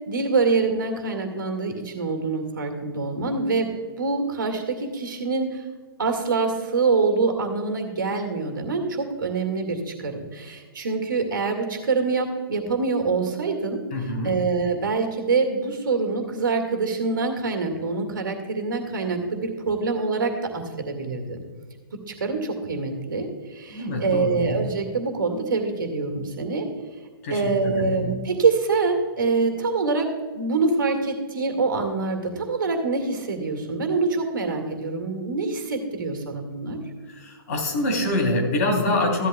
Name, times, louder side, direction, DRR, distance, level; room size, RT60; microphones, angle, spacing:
voice 1, 0.1-3.7 4.0-5.6 6.0-13.8 14.2-21.4 22.1-26.7 27.3-36.8, right 4 dB, 60° right, 4 dB, 2.0 m, -25 dB
voice 2, 13.9-14.3 23.7-24.5 27.2-28.0 37.1-39.3, left 1 dB, 40° left, 0 dB, 3.3 m, -25 dB
15.5 x 12.0 x 2.3 m, 1.5 s
figure-of-eight pair, 115°, 12 cm